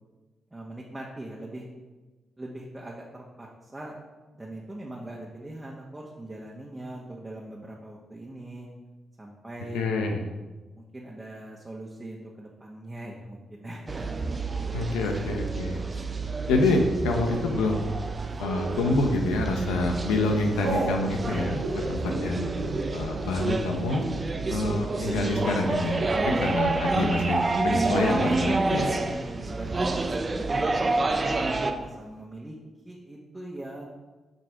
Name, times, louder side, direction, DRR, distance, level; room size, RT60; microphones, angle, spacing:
voice 1, 0.5-1.7 2.4-4.0 4.3-8.7 9.2-9.9 10.7-14.4 14.8-15.4 15.8-16.2 26.3-26.6 29.1-29.9 30.3-32.6 32.8-33.8, right 1 dB, 15° right, -3 dB, 1.3 m, -41 dB
voice 2, 9.7-10.2 14.7-15.8 16.5-17.9 18.4-22.6 22.9-24.1 24.5-28.9, left 2 dB, 90° left, 3 dB, 0.9 m, -27 dB
sound 1, 13.9-31.7, right 3 dB, 35° right, 0.7 m, -29 dB
Telephone, 18.4-18.9 19.5-19.8 20.0-20.9 21.5-27.0 27.2-28.3 28.6-29.1 29.4-29.5 29.7-30.3, right 2 dB, 90° right, 1.8 m, -35 dB
7.9 x 3.9 x 4.9 m, 1.2 s
supercardioid pair, 55°, 0 cm